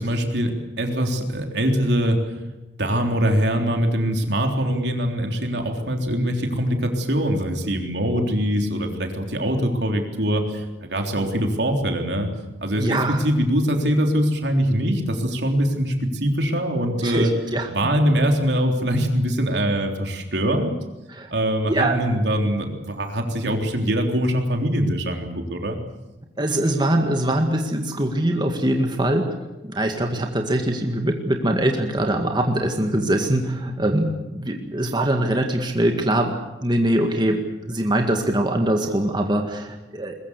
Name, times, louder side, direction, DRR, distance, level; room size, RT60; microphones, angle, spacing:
voice 1, 0.0-2.2 2.8-12.3 12.6-17.3 17.7-20.7 21.3-25.8, equal, 75° right, 3 dB, 3.6 m, -23 dB
voice 2, 12.8-13.2 17.0-17.7 21.1-21.3 21.7-22.0 26.4-29.3 29.6-40.1, right 1 dB, 25° right, 3 dB, 1.9 m, -22 dB
21.5 x 21.5 x 8.2 m, 1.0 s
head